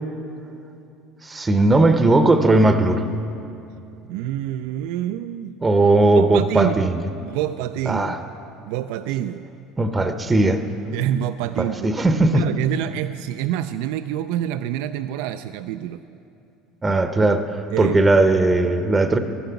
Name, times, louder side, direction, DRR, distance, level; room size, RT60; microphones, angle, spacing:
voice 1, 1.2-3.0 5.6-7.0 7.9-8.2 9.8-10.6 11.6-12.4 16.8-19.2, right 2 dB, 20° right, 9 dB, 0.7 m, -18 dB
voice 2, 4.1-5.5 6.1-6.9 7.2-8.2 8.7-9.4 10.9-11.9 12.3-16.0 17.7-18.0, right 12 dB, 80° right, 10 dB, 0.3 m, -27 dB
12.5 x 9.3 x 7.0 m, 2.7 s
supercardioid pair, 105°, 0 cm